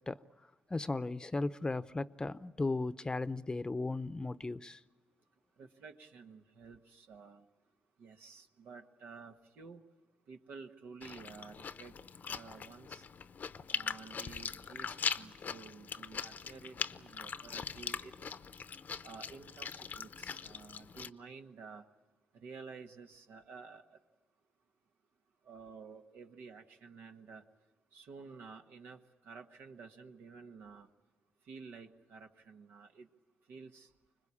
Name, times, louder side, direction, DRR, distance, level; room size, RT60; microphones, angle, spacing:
voice 1, 0.7-4.8, left 2 dB, 25° left, 0.7 m, -36 dB
voice 2, 5.6-7.4 8.0-9.8 10.3-11.9 12.3-13.0 13.7-18.1 19.0-21.8 22.3-24.0 25.4-27.5 27.9-30.9 31.5-33.1 33.5-33.9, right 5 dB, 85° right, 1.5 m, -52 dB
Chewing mastication, 11.0-21.1, left 6 dB, 55° left, 0.7 m, -41 dB
25.5 x 21.0 x 8.6 m
cardioid pair, 70°, 4 cm